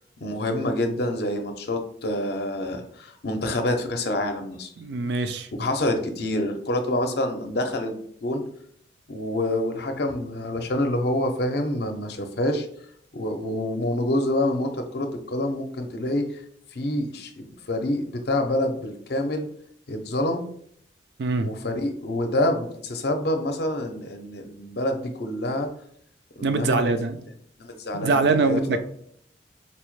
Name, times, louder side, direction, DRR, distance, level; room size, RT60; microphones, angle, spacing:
voice 1, 0.2-4.7 5.6-8.4 9.1-12.7 13.1-16.4 16.7-19.5 19.9-20.4 21.4-25.7 26.4-26.8 27.6-28.8, left 1 dB, 60° left, 5 dB, 0.6 m, -27 dB
voice 2, 4.8-5.5 21.2-21.5 26.4-27.2 27.9-28.8, right 3 dB, 65° right, 9 dB, 0.4 m, -23 dB
4.1 x 2.1 x 3.0 m, 0.65 s
head